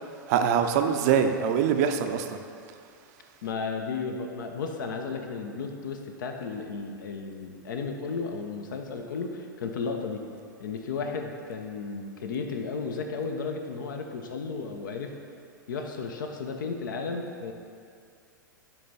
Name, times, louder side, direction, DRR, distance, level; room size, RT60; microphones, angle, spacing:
voice 1, 0.3-2.4, right 7 dB, 50° right, 7 dB, 0.5 m, -24 dB
voice 2, 3.4-10.2 10.6-15.1 15.7-17.5, left 4 dB, 70° left, 4 dB, 0.7 m, -34 dB
10.0 x 3.4 x 4.1 m, 2.3 s
hypercardioid pair, 100°, 11 cm